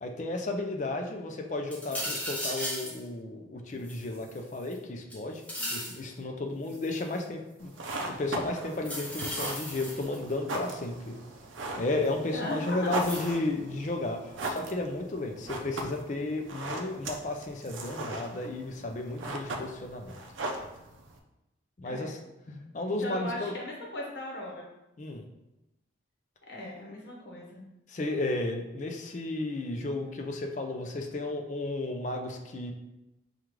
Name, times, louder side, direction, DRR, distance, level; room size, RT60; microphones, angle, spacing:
voice 1, 0.0-5.4 5.7-7.7 8.1-11.2 11.8-20.2 21.8-22.2 22.5-23.5 25.0-25.2 27.9-32.7, left 2 dB, 40° left, 3 dB, 0.4 m, -33 dB
sound 1, 1.7-3.0 3.8-4.7 5.1-6.0 6.7-7.1 8.7-10.3 12.0-12.1 13.0-13.3, equal, 5° left, 0.8 m, -36 dB
sound 2, 7.6-21.2, right 2 dB, 80° right, 0.5 m, -39 dB
voice 2, 12.3-12.9 21.8-22.1 23.0-24.7 26.5-27.6, left 1 dB, 60° left, -3 dB, 1.0 m, -38 dB
4.9 x 2.4 x 3.0 m, 0.95 s
head